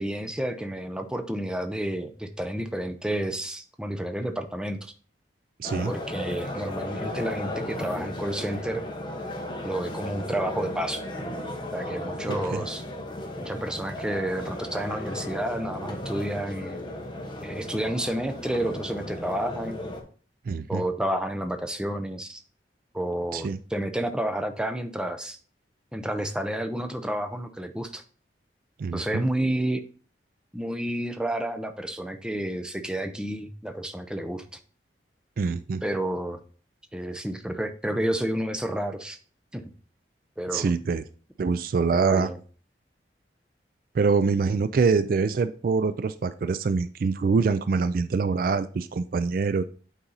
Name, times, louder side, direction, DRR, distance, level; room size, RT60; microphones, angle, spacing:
voice 1, 0.0-4.9 5.9-8.8 9.6-11.0 11.7-12.8 13.4-16.8 17.4-19.8 20.7-22.4 22.9-25.4 25.9-28.0 28.9-29.8 30.5-34.4 35.8-36.4 36.9-39.2 39.5-39.7 40.4-40.7 41.9-42.4, right 1 dB, 5° right, 7 dB, 0.6 m, -30 dB
sound 1, 5.6-20.0, left 1 dB, 25° left, 1.1 m, -35 dB
voice 2, 5.6-5.9 12.3-12.6 20.5-20.8 23.3-23.6 28.8-29.2 35.4-35.8 40.5-41.0 41.4-42.3 43.9-49.6, right 4 dB, 50° right, 13 dB, 0.3 m, -25 dB
8.6 x 4.1 x 4.0 m, 0.41 s
head